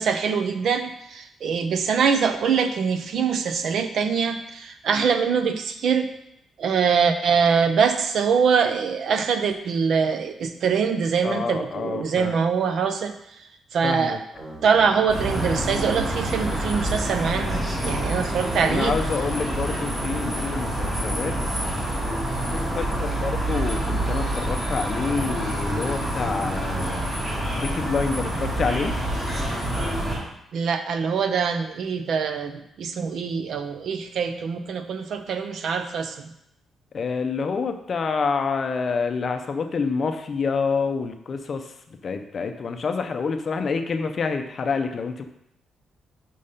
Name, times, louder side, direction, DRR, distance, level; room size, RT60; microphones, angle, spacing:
voice 1, 0.0-6.1 6.6-13.1 13.7-14.2 14.6-19.0 30.5-36.3, right 6 dB, 55° right, 8 dB, 0.6 m, -23 dB
voice 2, 11.2-12.4 13.8-14.2 18.6-21.4 22.5-27.1 27.5-28.9 36.9-45.2, left 5 dB, 35° left, 6 dB, 0.5 m, -27 dB
sound 1, 14.3-20.6, right 1 dB, 40° right, 2.9 m, -41 dB
sound 2, 15.1-30.2, right 1 dB, 20° right, 3.1 m, -27 dB
5.3 x 5.1 x 5.5 m, 0.79 s
cardioid pair, 170°, 0 cm